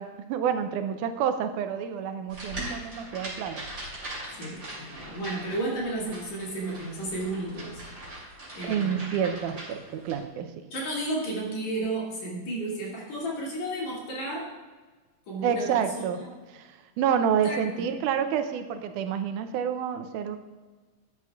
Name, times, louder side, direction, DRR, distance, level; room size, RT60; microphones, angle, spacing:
voice 1, 0.0-3.7 8.6-10.5 15.4-16.2 16.5-20.4, right 8 dB, 90° right, 8 dB, 2.2 m, -28 dB
sound 1, 2.3-10.2, right 1 dB, 25° right, 3.4 m, -41 dB
voice 2, 4.3-7.8 8.5-9.0 10.7-14.5 15.3-16.3 17.2-17.8, right 1 dB, 60° left, -4 dB, 3.8 m, -33 dB
13.0 x 9.8 x 2.4 m, 1.3 s
omnidirectional pair, 3.6 m